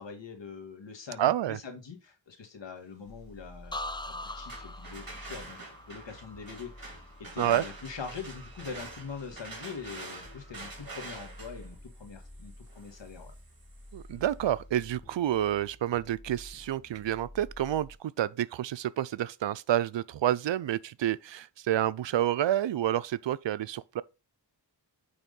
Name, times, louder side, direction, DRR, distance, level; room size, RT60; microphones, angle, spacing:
voice 1, 0.0-3.7 4.0-7.0 7.3-13.3, left 5 dB, 75° left, 1.6 m, -43 dB
voice 2, 1.2-1.6 7.4-7.6 13.9-24.0, right 12 dB, 75° right, 0.5 m, -29 dB
sound 1, 3.0-17.9, left 1 dB, 35° left, 1.7 m, -51 dB
sound 2, 3.7-7.5 7.9-8.4, left 2 dB, 10° left, 0.4 m, -43 dB
sound 3, 4.2-14.0, right 3 dB, 50° right, 2.6 m, -47 dB
8.9 x 3.6 x 3.8 m
cardioid pair, 55°, 44 cm